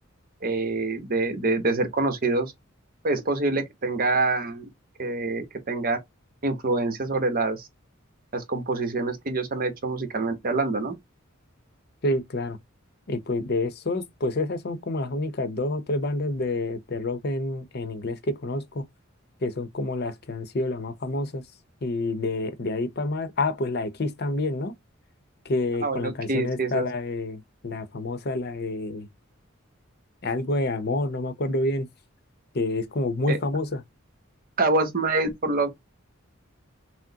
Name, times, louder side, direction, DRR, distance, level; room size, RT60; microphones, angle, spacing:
voice 1, 0.4-2.5 3.0-4.7 5.0-6.0 6.4-7.7 8.3-10.9 25.8-26.9 33.3-33.4 34.6-35.7, right 3 dB, 45° right, 1.0 m, -26 dB
voice 2, 12.0-12.6 13.1-18.9 19.4-21.4 21.8-24.7 25.4-29.1 30.2-31.9 32.5-33.8, left 2 dB, 50° left, 0.8 m, -28 dB
6.0 x 2.1 x 2.8 m
head